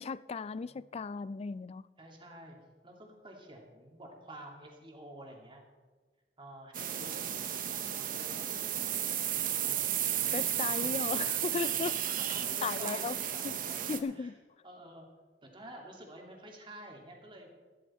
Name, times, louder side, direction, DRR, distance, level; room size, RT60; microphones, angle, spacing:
voice 1, 0.0-1.8 10.3-11.9 12.6-13.2 13.4-13.6 13.9-14.3, left 5 dB, 35° left, 0.3 m, -36 dB
voice 2, 2.0-5.6 6.4-7.2 8.1-8.4 9.5-11.2 11.5-11.7 12.1-14.3 14.6-15.1 15.4-17.5, right 1 dB, 30° right, 2.4 m, -50 dB
sound 1, 6.7-14.0, right 10 dB, 50° right, 0.9 m, -33 dB
13.5 x 13.0 x 4.3 m
head